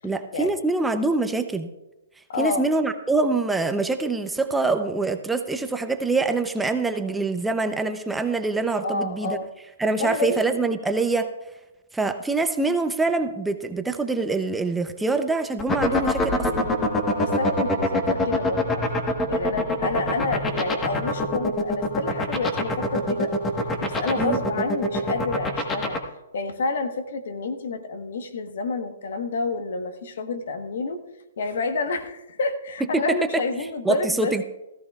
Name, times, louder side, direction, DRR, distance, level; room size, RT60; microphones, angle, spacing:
voice 1, 0.0-1.7 2.4-9.4 9.8-11.3 11.9-16.7 24.2-24.4 33.8-34.4, right 3 dB, 5° right, 7 dB, 0.6 m, -25 dB
voice 2, 2.3-2.6 8.8-9.5 10.0-10.4 17.1-18.9 19.3-23.4 23.8-26.0 26.3-31.0 31.4-34.3, left 3 dB, 70° left, 8 dB, 1.2 m, -29 dB
sound 1, 15.6-26.0, left 2 dB, 15° left, 1.3 m, -23 dB
16.5 x 14.0 x 2.4 m, 1.0 s
hypercardioid pair, 140°, 0 cm